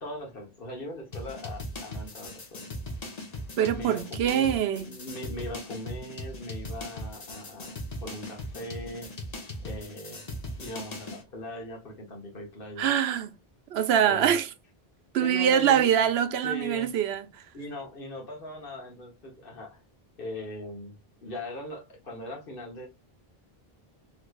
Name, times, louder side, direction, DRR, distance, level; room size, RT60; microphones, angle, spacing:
voice 1, 0.0-2.7 3.7-4.6 4.9-9.1 9.6-10.3 10.6-12.9 14.0-14.3 15.2-15.9 16.4-16.9 17.5-19.8 20.2-21.0 21.2-22.9, left 1 dB, 60° left, 1.2 m, -40 dB
sound 1, 1.1-11.2, left 1 dB, 40° left, 0.9 m, -39 dB
voice 2, 3.6-4.9 12.8-13.3 13.7-14.5 15.1-17.3, right 9 dB, 85° right, 0.8 m, -24 dB
3.2 x 3.1 x 2.3 m
omnidirectional pair, 1.0 m